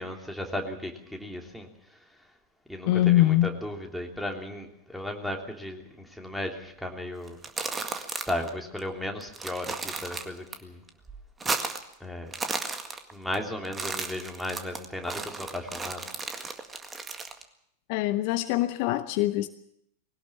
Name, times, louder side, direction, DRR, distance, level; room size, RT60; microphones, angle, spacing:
voice 1, 0.0-1.7 2.7-7.4 8.3-10.8 12.0-12.3 13.1-16.1, left 1 dB, ahead, 1 dB, 3.1 m, -35 dB
voice 2, 2.9-3.6 17.9-19.5, left 15 dB, 45° left, 12 dB, 0.8 m, -23 dB
sound 1, 7.3-8.5 8.8-8.9 9.2-10.6 10.9-11.9 12.2-13.4 13.6-17.4, right 4 dB, 15° right, 1.9 m, -34 dB
21.0 x 18.0 x 7.3 m, 0.74 s
figure-of-eight pair, 90°, 0 cm